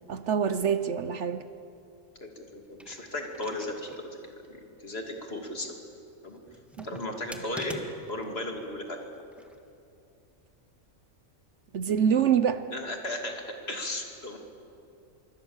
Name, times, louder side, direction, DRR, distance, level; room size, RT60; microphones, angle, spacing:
voice 1, 0.1-1.4 6.8-6.9 7.3-7.4 11.7-12.6, right 8 dB, 60° right, 11 dB, 1.0 m, -25 dB
voice 2, 2.5-4.0 4.5-4.6 4.8-5.7 6.2-6.4 6.8-7.8 8.1-9.0 12.7-14.4, left 1 dB, 45° left, 2 dB, 2.9 m, -35 dB
sound 1, 2.6-4.0 4.4-4.5 6.5-8.2 9.1-9.6, equal, ahead, 1.6 m, -45 dB
25.5 x 23.5 x 7.2 m, 2.6 s
omnidirectional pair, 1.4 m